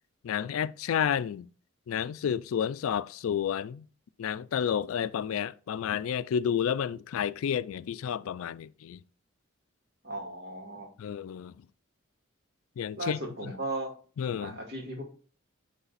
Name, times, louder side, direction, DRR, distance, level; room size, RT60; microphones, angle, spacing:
voice 1, 0.2-1.5 1.9-3.9 4.2-9.0 11.0-11.7 12.8-13.5 14.2-14.6, left 8 dB, 85° left, 0.3 m, -31 dB
voice 2, 10.0-10.9 13.0-13.9 14.4-15.0, right 2 dB, 50° right, 2.3 m, -36 dB
9.7 x 3.3 x 4.0 m
head